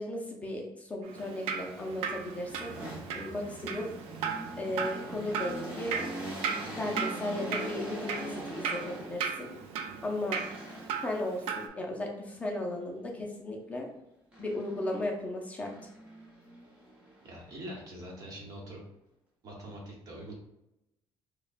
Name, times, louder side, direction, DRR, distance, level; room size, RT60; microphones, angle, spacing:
voice 1, 0.0-3.9 4.6-6.0 6.6-9.5 10.0-10.4 11.0-13.9 14.4-15.9, left 1 dB, 15° left, 0 dB, 0.6 m, -36 dB
Drip, 1.1-11.7, right 6 dB, 85° right, 0.5 m, -37 dB
sound 1, 1.8-9.5 10.3-11.2 14.3-15.1 15.6-18.0, right 1 dB, 15° right, 1.0 m, -42 dB
voice 2, 17.2-18.8 19.4-20.3, equal, 40° right, -2 dB, 1.1 m, -43 dB
4.7 x 2.2 x 2.5 m, 0.86 s
cardioid pair, 165°, 10 cm